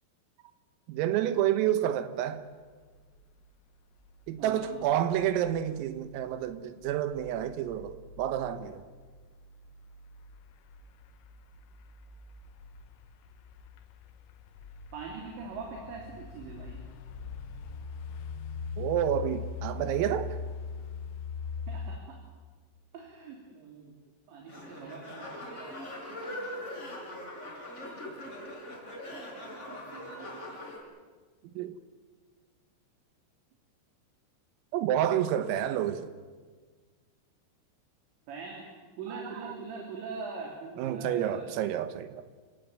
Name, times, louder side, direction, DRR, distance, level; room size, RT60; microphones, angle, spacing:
voice 1, 0.9-2.4 4.3-8.8 18.8-20.4 31.6-31.8 34.7-36.1 39.1-39.2 40.8-42.2, right 11 dB, 85° right, 4.0 m, -29 dB
sound 1, 2.9-22.0, left 5 dB, 85° left, 3.9 m, -42 dB
voice 2, 4.4-4.9 14.9-16.8 21.7-22.2 22.9-23.9 24.3-26.0 29.1-30.3 30.5-30.7 38.3-38.7 39.0-41.5, right 4 dB, 60° right, 5.2 m, -43 dB
sound 2, 24.5-30.8, left 1 dB, 15° left, 4.7 m, -41 dB
29.5 x 17.0 x 9.1 m
omnidirectional pair, 5.9 m